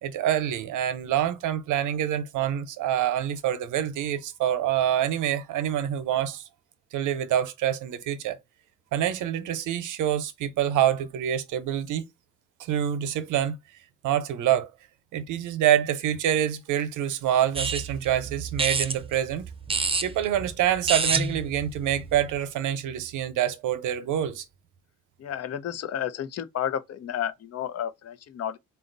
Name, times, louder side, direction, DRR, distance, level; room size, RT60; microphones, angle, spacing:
voice 1, 0.0-6.4 6.9-8.4 8.9-12.0 12.6-13.6 14.0-14.7 15.1-19.5 20.0-24.5, right 10 dB, 80° right, 0.8 m, -26 dB
sound 1, 17.5-22.4, right 4 dB, 20° right, 0.6 m, -29 dB
voice 2, 25.2-28.6, left 9 dB, 55° left, 0.7 m, -31 dB
4.0 x 2.4 x 3.9 m
cardioid pair, 90°, 30 cm